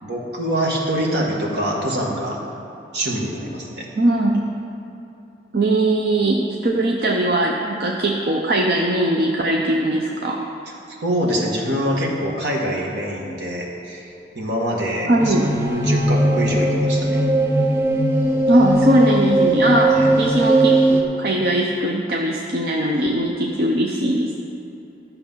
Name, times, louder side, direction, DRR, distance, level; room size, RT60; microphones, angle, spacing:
voice 1, 0.0-2.4 2.9-3.9 10.9-17.2 19.9-20.1, equal, 75° right, -2 dB, 1.9 m, -25 dB
voice 2, 4.0-4.4 5.5-10.5 15.1-15.5 18.5-20.8 21.2-24.5, right 1 dB, 55° right, 0 dB, 0.7 m, -20 dB
dark organic drone, 15.2-21.0, right 1 dB, 15° right, 0.8 m, -18 dB
12.5 x 6.7 x 5.6 m, 2.9 s
head